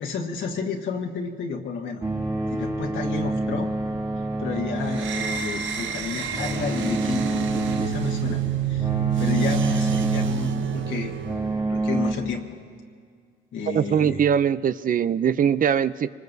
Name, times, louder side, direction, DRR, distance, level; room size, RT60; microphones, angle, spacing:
voice 1, 0.0-2.0 2.5-3.7 4.4-7.4 7.8-8.4 8.7-8.9 9.2-11.1 11.7-12.4 13.5-14.2, left 5 dB, 70° left, 0 dB, 1.5 m, -31 dB
sound 1, 2.0-12.1, right 2 dB, 20° right, 2.2 m, -28 dB
sound 2, 4.9-11.5, right 11 dB, 70° right, 0.8 m, -28 dB
voice 2, 13.7-16.1, right 8 dB, 45° right, 15 dB, 0.5 m, -21 dB
24.5 x 20.5 x 2.7 m, 2.1 s
cardioid pair, 90°, 20 cm